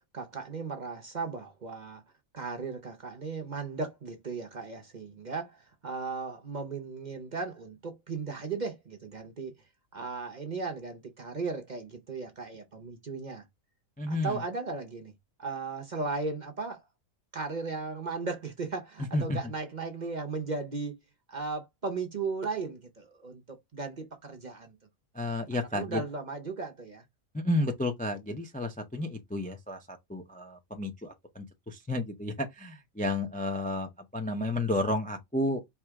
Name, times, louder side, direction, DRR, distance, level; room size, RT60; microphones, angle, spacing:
voice 1, 0.1-2.0 2.3-9.5 9.9-13.4 14.1-15.1 15.4-16.8 17.3-21.0 21.3-24.8 25.5-27.0, right 4 dB, 40° right, 0.7 m, -36 dB
voice 2, 14.0-14.4 19.1-19.4 25.1-26.0 27.3-35.6, left 1 dB, 10° left, 0.4 m, -32 dB
4.7 x 2.9 x 3.5 m
omnidirectional pair, 1.5 m